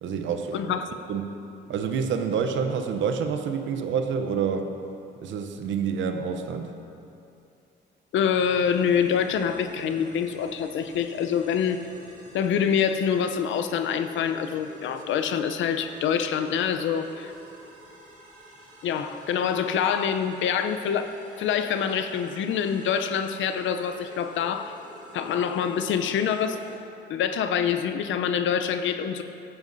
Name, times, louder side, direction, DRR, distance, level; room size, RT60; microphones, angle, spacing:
voice 1, 0.0-0.6 1.1-1.3 1.7-4.7 5.2-6.7, right 6 dB, 75° right, 6 dB, 0.7 m, -27 dB
voice 2, 0.5-0.9 8.1-11.8 12.3-17.3 18.8-21.1 21.4-24.8 25.1-26.6 27.1-29.2, left 7 dB, 75° left, 9 dB, 0.6 m, -25 dB
sound 1, 8.3-26.8, right 1 dB, 35° right, 2.0 m, -49 dB
14.0 x 8.0 x 2.6 m, 2.6 s
cardioid pair, 90°, 20 cm